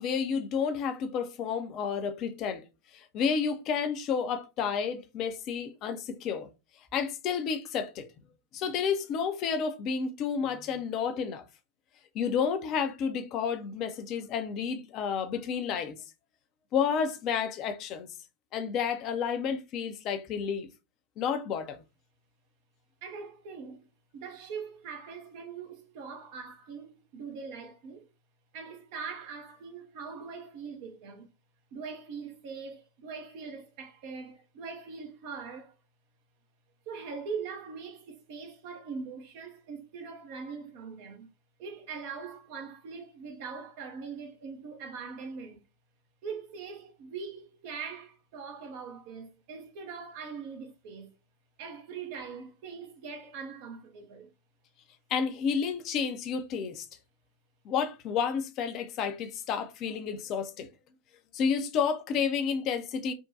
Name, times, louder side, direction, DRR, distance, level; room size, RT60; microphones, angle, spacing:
voice 1, 0.0-2.6 2.9-6.5 6.9-8.1 8.5-11.4 12.1-16.0 16.7-18.1 18.5-20.7 21.2-21.8 55.1-56.9 57.6-60.7 61.3-63.1, left 6 dB, 35° left, 0.5 m, -30 dB
voice 2, 23.0-28.1 28.5-31.3 31.7-35.8 36.9-41.3 41.6-45.6 46.2-51.2 51.6-54.3, right 5 dB, 45° right, 0.6 m, -42 dB
3.5 x 2.2 x 2.6 m
figure-of-eight pair, 90°, 0 cm